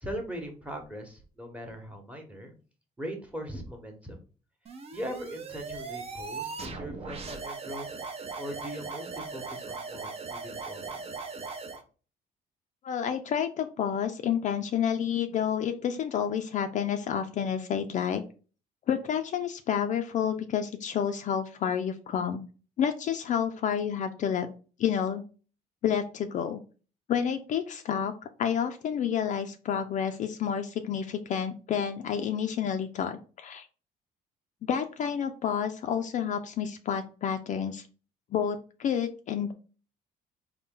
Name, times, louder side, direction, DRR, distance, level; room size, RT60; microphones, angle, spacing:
voice 1, 0.0-2.5 3.0-4.2 4.9-7.9 8.4-11.0, equal, 10° right, 4 dB, 1.0 m, -40 dB
sound 1, 4.7-11.8, right 4 dB, 35° right, 0.6 m, -39 dB
voice 2, 12.8-18.2 18.9-22.4 22.8-24.5 24.8-25.2 25.8-26.6 27.1-28.1 28.4-33.7 34.7-37.8 38.3-39.5, left 8 dB, 45° left, 7 dB, 0.4 m, -29 dB
3.9 x 2.2 x 3.7 m, 0.36 s
cardioid pair, 110°, 17 cm